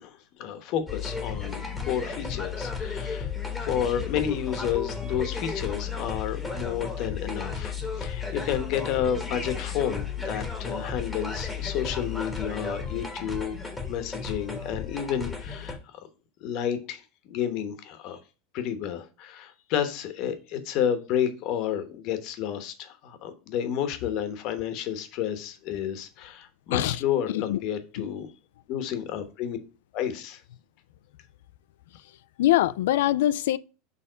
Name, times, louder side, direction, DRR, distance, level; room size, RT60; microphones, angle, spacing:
voice 1, 0.0-3.3 3.6-13.6 13.9-16.1 16.4-18.2 18.5-28.3 28.7-29.6 29.9-30.4, left 9 dB, 45° left, 1.0 m, -31 dB
sound 1, 0.9-15.7, left 5 dB, 5° left, 1.2 m, -33 dB
voice 2, 26.7-27.0 27.3-27.6 28.0-28.1 32.4-33.6, left 14 dB, 85° left, 0.4 m, -23 dB
6.7 x 3.5 x 5.0 m
supercardioid pair, 165°, 0 cm